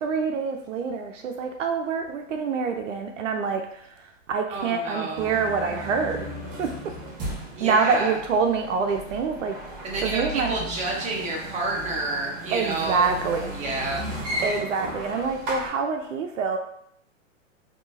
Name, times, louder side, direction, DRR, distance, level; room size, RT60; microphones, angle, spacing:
voice 1, 0.0-3.7 4.3-6.3 6.6-6.7 7.6-9.6 10.0-10.6 12.5-13.5 14.4-16.6, right 5 dB, 75° right, 4 dB, 0.6 m, -26 dB
voice 2, 4.5-5.4 7.5-8.2 9.8-13.1 13.5-14.0, right 2 dB, 20° right, -3 dB, 0.8 m, -29 dB
sound 1, 5.1-15.7, right 1 dB, 40° right, 1.4 m, -35 dB
3.6 x 2.7 x 2.6 m, 0.70 s
hypercardioid pair, 115°, 39 cm